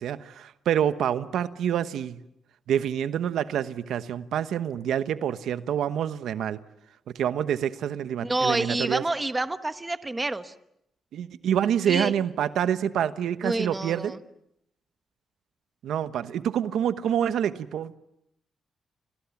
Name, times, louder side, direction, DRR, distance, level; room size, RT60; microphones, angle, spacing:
voice 1, 0.0-2.2 2.7-6.6 7.1-9.0 11.1-14.2 15.8-18.0, right 9 dB, 85° right, 12 dB, 1.1 m, -27 dB
voice 2, 8.2-10.5 11.9-12.1 13.4-14.2, right 2 dB, 15° right, 11 dB, 1.2 m, -28 dB
29.5 x 25.0 x 7.2 m, 0.79 s
cardioid pair, 105°, 0 cm